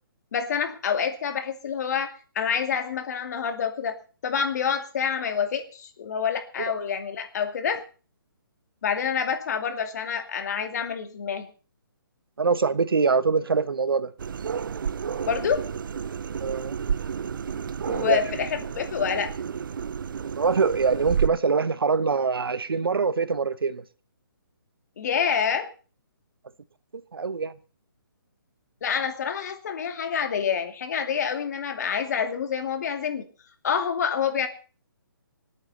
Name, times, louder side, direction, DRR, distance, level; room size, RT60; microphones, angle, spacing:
voice 1, 0.3-4.0 4.2-7.8 8.8-11.5 15.3-15.6 17.9-19.3 25.0-25.7 28.8-33.2 33.6-34.5, left 7 dB, 50° left, 2.4 m, -27 dB
voice 2, 12.4-14.1 16.4-16.7 18.1-18.2 20.2-23.8 27.1-27.5, right 5 dB, 85° right, 1.1 m, -24 dB
sound 1, 14.2-21.3, right 7 dB, 65° right, 0.6 m, -31 dB
26.0 x 8.9 x 4.2 m
hypercardioid pair, 160°, 12 cm